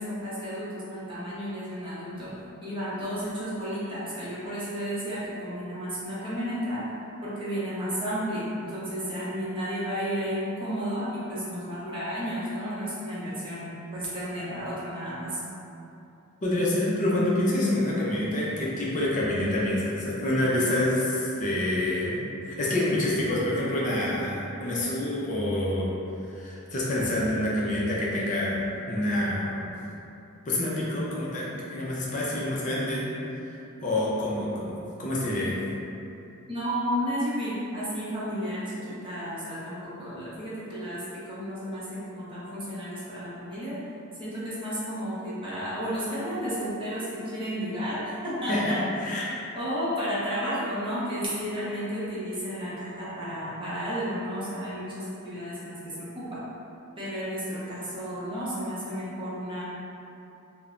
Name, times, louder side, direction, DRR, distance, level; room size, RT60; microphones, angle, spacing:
voice 1, 0.0-2.3 2.6-6.8 7.2-15.4 36.5-43.8 44.2-49.1 49.5-56.4 57.0-59.6, equal, 25° right, -10 dB, 0.7 m, -32 dB
voice 2, 16.4-25.9 26.4-29.7 30.5-33.1 33.8-35.6 48.5-49.3, left 1 dB, 35° left, -6 dB, 0.5 m, -27 dB
3.0 x 2.0 x 2.4 m, 2.8 s
head